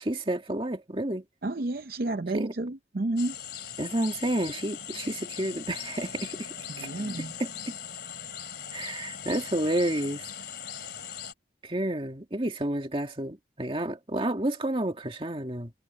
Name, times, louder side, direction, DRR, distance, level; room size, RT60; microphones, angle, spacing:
voice 1, 0.0-1.2 2.3-2.5 3.8-6.5 6.8-6.9 7.2-7.7 8.7-10.2 11.6-15.7, right 1 dB, 30° right, 2.2 m, -30 dB
voice 2, 1.4-3.3 6.7-7.3, right 2 dB, 55° right, 0.6 m, -31 dB
sound 1, 3.2-11.3, left 9 dB, 60° left, 2.9 m, -40 dB
head